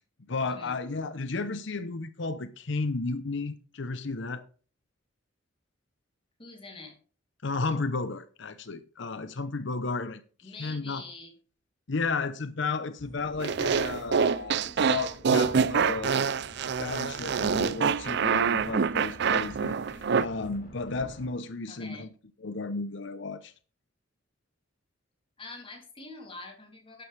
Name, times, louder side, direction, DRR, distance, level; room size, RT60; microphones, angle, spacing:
voice 1, 0.3-4.5 7.4-11.0 11.9-16.3 16.8-22.1 22.4-23.5, left 3 dB, 65° left, 0.8 m, -33 dB
voice 2, 6.4-7.0 10.4-11.3 21.7-22.1 25.4-27.0, left 3 dB, 25° left, 2.9 m, -45 dB
sound 1, 13.0-21.3, equal, 45° left, 4.6 m, -48 dB
sound 2, 13.4-20.3, right 6 dB, 60° right, 0.5 m, -26 dB
12.0 x 9.5 x 3.4 m
head